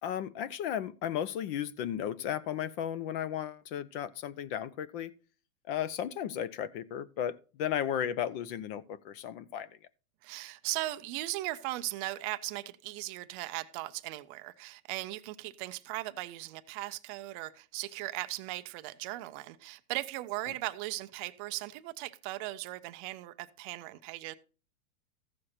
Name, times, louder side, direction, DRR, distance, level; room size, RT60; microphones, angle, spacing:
voice 1, 0.0-5.1 5.7-9.7, left 9 dB, 40° left, 0.8 m, -34 dB
voice 2, 10.2-24.3, right 18 dB, 25° right, 0.4 m, -38 dB
15.0 x 6.4 x 4.3 m
hypercardioid pair, 140°, 44 cm